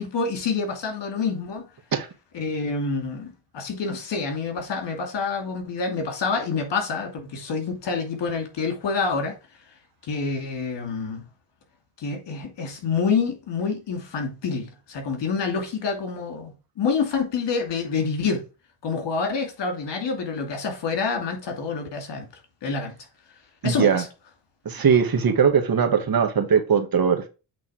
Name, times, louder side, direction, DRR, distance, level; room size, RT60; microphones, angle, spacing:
voice 1, 0.0-1.7 2.3-9.4 10.0-11.2 12.0-18.4 18.8-22.3 22.6-22.9 23.6-24.1, left 5 dB, 70° left, 2.7 m, -27 dB
voice 2, 23.6-24.0 24.7-27.3, right 6 dB, 50° right, 1.8 m, -20 dB
8.2 x 3.7 x 5.0 m
supercardioid pair, 60°, 44 cm